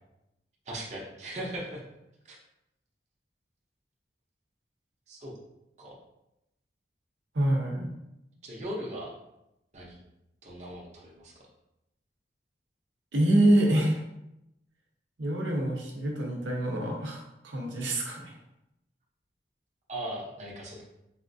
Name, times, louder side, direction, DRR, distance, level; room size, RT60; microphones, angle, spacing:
voice 1, 0.7-1.8 2.3-2.4 5.1-5.3 5.8-5.9 8.4-9.1 9.7-10.0 10.4-11.3 19.9-20.8, right 1 dB, 40° right, -3 dB, 0.7 m, -38 dB
voice 2, 7.3-7.9 13.1-14.0 15.2-18.3, right 1 dB, 85° right, -1 dB, 0.7 m, -26 dB
4.1 x 2.4 x 2.6 m, 0.87 s
head